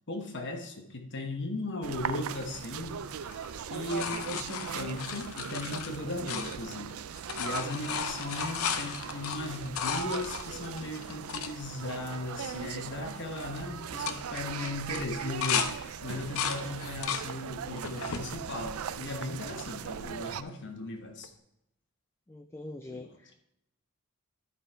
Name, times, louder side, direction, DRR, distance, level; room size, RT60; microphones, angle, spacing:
voice 1, 0.1-3.3 3.6-6.9 7.4-21.3 22.9-23.1, left 2 dB, 55° left, 4 dB, 1.1 m, -37 dB
sound 1, 1.8-20.4, right 8 dB, 75° right, 0.4 m, -39 dB
sound 2, 3.2-6.9 7.2-11.5 12.1-12.2 12.4-12.8 13.1-13.5 13.9-15.7 16.1-17.3 17.8-18.3 18.9-19.6 21.2-21.3, left 7 dB, 75° left, 0.6 m, -35 dB
voice 2, 22.3-23.3, left 2 dB, 10° left, 7 dB, 0.3 m, -44 dB
11.0 x 5.1 x 4.5 m, 0.83 s
head